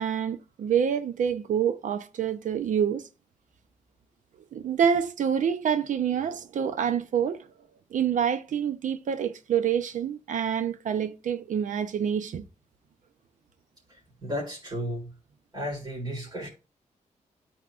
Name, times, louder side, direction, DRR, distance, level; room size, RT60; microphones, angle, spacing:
voice 1, 0.0-3.0 4.5-7.4 7.9-12.4, right 8 dB, 75° right, 0.7 m, -27 dB
voice 2, 14.2-15.1 15.5-16.5, equal, 35° right, 3.8 m, -33 dB
13.0 x 4.5 x 2.5 m
wide cardioid pair, 110°, 13 cm